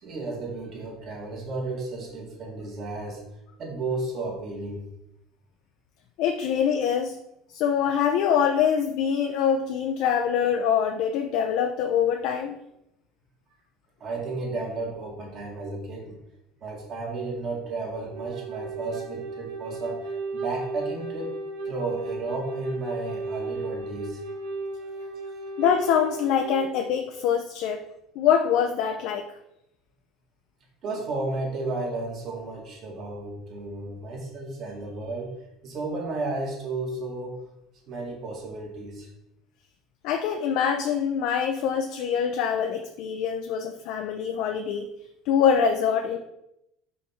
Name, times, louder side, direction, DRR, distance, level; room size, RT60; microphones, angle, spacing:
voice 1, 0.0-3.2 3.6-4.8 14.0-16.2 16.6-21.3 21.7-24.4 30.8-35.4 35.6-37.4 37.9-39.1, right 3 dB, 45° right, -1 dB, 1.9 m, -33 dB
voice 2, 6.2-7.2 7.5-12.5 25.6-27.8 28.2-29.2 40.0-44.9 45.3-46.2, left 8 dB, 65° left, 5 dB, 0.5 m, -24 dB
Wind instrument woodwind instrument, 18.1-26.7, right 3 dB, 80° right, 1.2 m, -35 dB
5.4 x 3.5 x 5.7 m, 0.84 s
cardioid pair, 135°, 0 cm